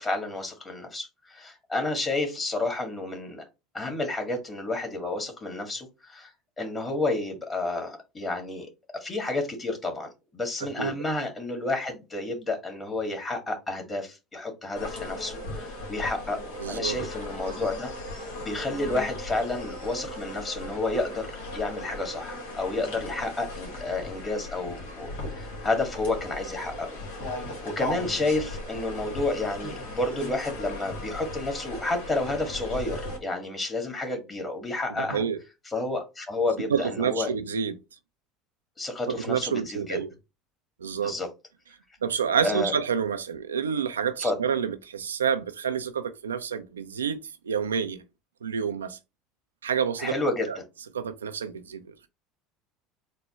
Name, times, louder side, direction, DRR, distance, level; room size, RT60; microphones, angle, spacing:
voice 1, 0.0-3.4 3.7-6.3 6.6-8.7 9.0-16.4 16.7-21.3 21.5-26.9 27.4-35.2 35.7-37.3 38.8-40.0 41.0-41.3 42.4-42.7 44.2-44.3 50.0-50.6, left 2 dB, 25° left, 1.7 m, -30 dB
sound 1, 14.8-33.2, left 2 dB, 80° left, 1.3 m, -37 dB
voice 2, 16.6-17.0 34.9-35.4 36.7-37.8 39.1-40.1 40.8-41.2 42.0-47.2 47.4-48.0 48.4-49.0 49.6-50.1 50.5-50.6 50.9-52.1, right 7 dB, 90° right, 0.3 m, -28 dB
4.0 x 2.2 x 4.1 m
hypercardioid pair, 70°, 0 cm